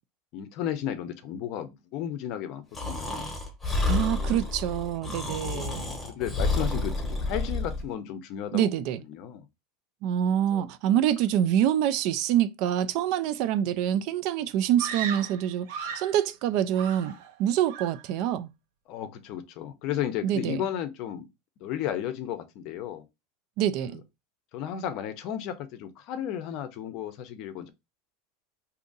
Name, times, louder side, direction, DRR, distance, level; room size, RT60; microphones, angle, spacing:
voice 1, 0.3-3.3 5.4-5.7 6.0-8.7 9.0-9.4 10.5-10.7 18.9-21.3 21.6-23.1 23.8-24.0 24.5-27.7, left 10 dB, 45° left, 0.6 m, -34 dB
Breathing, 2.7-7.8, left 2 dB, 10° left, 0.9 m, -30 dB
voice 2, 3.9-5.8 8.5-9.0 10.0-18.5 20.2-20.6 23.6-24.0, right 10 dB, 50° right, 0.3 m, -26 dB
Screaming, 14.8-16.2 16.7-17.4 17.7-18.1, right 7 dB, 75° right, 0.7 m, -36 dB
2.7 x 2.5 x 3.8 m
supercardioid pair, 160°, 0 cm